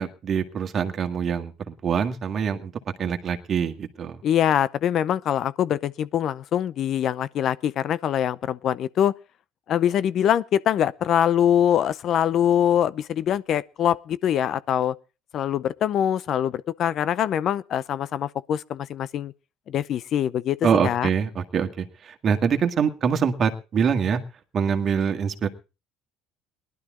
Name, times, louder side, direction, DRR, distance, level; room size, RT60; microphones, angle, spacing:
voice 1, 0.0-2.7 3.0-4.2 20.6-24.2 24.5-25.5, right 7 dB, 40° right, 1.9 m, -24 dB
voice 2, 4.2-9.1 9.7-14.9 15.3-19.3 19.7-21.1, left 10 dB, 50° left, 0.6 m, -23 dB
18.5 x 12.0 x 3.7 m
supercardioid pair, 105°, 0 cm